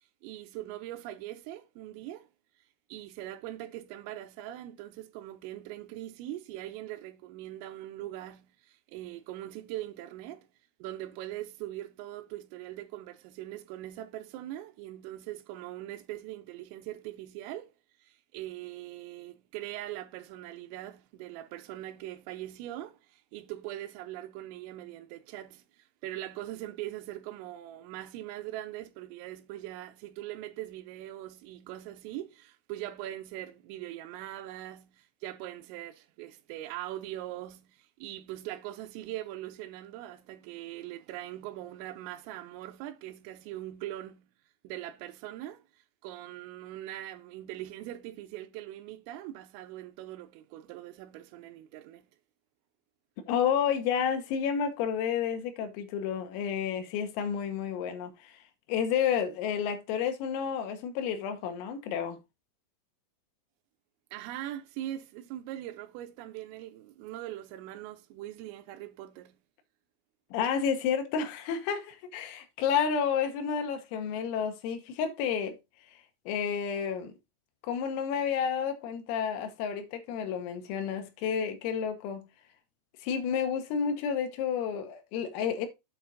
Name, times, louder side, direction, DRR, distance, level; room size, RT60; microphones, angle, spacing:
voice 1, 0.2-2.3 2.9-10.5 10.8-17.7 18.0-44.3 44.6-52.1 64.1-69.4, right 14 dB, 90° right, 3.3 m, -41 dB
voice 2, 53.3-58.4 58.7-62.2 70.3-75.6 76.3-77.1 77.6-82.3 83.0-85.7, left 7 dB, 85° left, 3.7 m, -30 dB
8.3 x 4.7 x 3.9 m
omnidirectional pair, 5.9 m